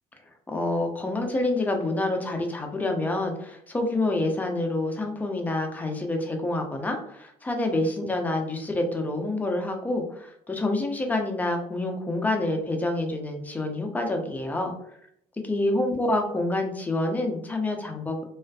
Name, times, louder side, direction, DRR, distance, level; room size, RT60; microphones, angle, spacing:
voice 1, 0.5-14.7 15.4-18.2, left 2 dB, 10° left, 2 dB, 0.5 m, -27 dB
2.4 x 2.4 x 2.3 m, 0.69 s
cardioid pair, 125°, 15 cm